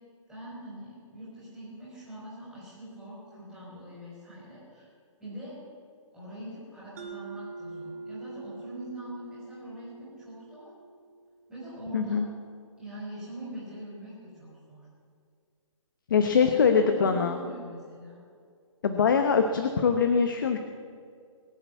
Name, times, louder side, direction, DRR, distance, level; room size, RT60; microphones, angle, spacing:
voice 1, 0.3-4.9 5.2-5.6 6.1-10.7 11.5-12.2 12.8-14.9 16.1-18.2, right 1 dB, ahead, -10 dB, 4.4 m, -43 dB
Mallet percussion, 7.0-11.5, right 3 dB, 30° right, 1.3 m, -44 dB
voice 2, 11.9-12.3 16.1-17.4 18.8-20.6, left 6 dB, 40° left, 6 dB, 0.9 m, -23 dB
21.0 x 7.9 x 8.2 m, 2.2 s
hypercardioid pair, 175°, 17 cm